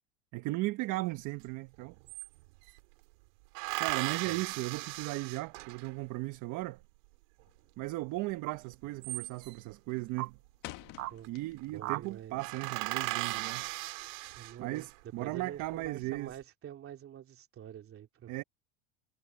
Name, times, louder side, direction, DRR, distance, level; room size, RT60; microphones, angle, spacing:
voice 1, 0.3-1.9 3.8-6.8 7.8-10.4 11.3-13.7 14.6-16.3 18.3-18.4, right 20 dB, 50° right, 1.3 m, -36 dB
sound 1, 1.4-1.5 1.7-2.8 3.5-6.1 8.7-9.7 10.9-11.3 11.6-11.7 12.0-12.1 12.4-14.9 15.5-16.2, right 27 dB, 70° right, 3.9 m, -37 dB
sound 2, 4.3-4.4 5.9-6.4 8.4-8.6 9.4-9.5 10.2-10.3 11.0-11.2 11.8-12.0, right 19 dB, 85° right, 1.2 m, -38 dB
sound 3, 7.4-7.8 8.1-8.4 8.8-9.2 9.5-11.9 12.2-13.7, left 19 dB, 50° left, 1.6 m, -49 dB
voice 2, 11.7-12.5 14.4-14.9 15.2-18.4, right 10 dB, 35° right, 3.4 m, -46 dB
supercardioid pair, 130°, 40 cm